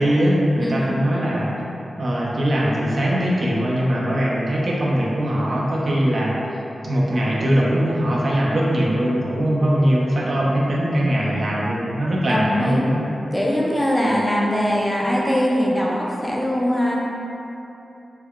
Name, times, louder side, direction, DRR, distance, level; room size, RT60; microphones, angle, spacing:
voice 1, 0.0-1.5 2.0-6.4 6.8-13.0 14.0-14.2, equal, 55° right, -5 dB, 0.6 m, -21 dB
voice 2, 0.6-0.9 12.3-12.8 13.3-17.0, equal, 5° left, -4 dB, 0.4 m, -21 dB
3.3 x 2.2 x 3.5 m, 2.8 s
wide cardioid pair, 95°, 0 cm